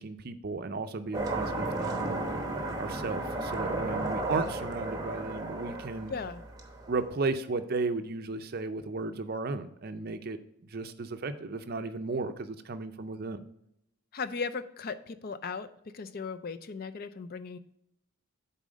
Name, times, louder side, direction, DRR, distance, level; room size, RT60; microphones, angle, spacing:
voice 1, 0.0-2.2 2.8-6.1 6.9-13.4, right 3 dB, 45° right, 10 dB, 0.5 m, -34 dB
sound 1, 1.1-7.1, right 2 dB, 15° right, 0.9 m, -34 dB
voice 2, 6.1-6.4 14.1-15.7 15.9-17.6, left 5 dB, 45° left, 12 dB, 0.4 m, -37 dB
7.4 x 4.2 x 5.0 m, 0.78 s
head